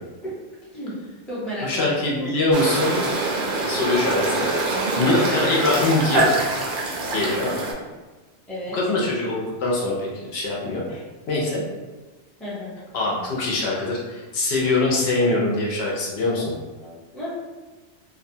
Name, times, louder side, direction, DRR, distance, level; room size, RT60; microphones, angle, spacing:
voice 1, 0.6-1.0 1.3-2.3 5.0-5.3 8.5-8.8 12.4-12.7 16.3-16.5 16.8-17.3, equal, ahead, -9 dB, 0.5 m, -33 dB
voice 2, 1.6-3.0 3.7-4.5 5.0-6.6 7.1-7.5 8.7-11.0 11.3-11.6 12.9-16.5, left 2 dB, 65° left, -4 dB, 0.8 m, -23 dB
sound 1, 2.5-7.7, right 2 dB, 60° right, 0.6 m, -24 dB
2.5 x 2.2 x 2.6 m, 1.2 s
omnidirectional pair, 1.2 m